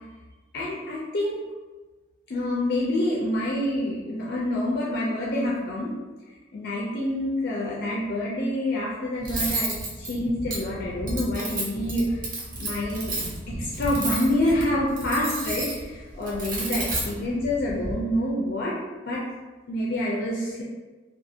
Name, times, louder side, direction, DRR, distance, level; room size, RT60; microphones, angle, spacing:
voice 1, 0.5-1.4 2.3-5.9 6.5-12.3 12.6-13.1 13.5-18.8 19.0-19.2 19.7-20.6, left 1 dB, 50° left, -5 dB, 0.4 m, -27 dB
Cutlery silverware, 9.2-17.9, right 2 dB, 45° right, 0.5 m, -32 dB
2.4 x 2.4 x 2.7 m, 1.2 s
head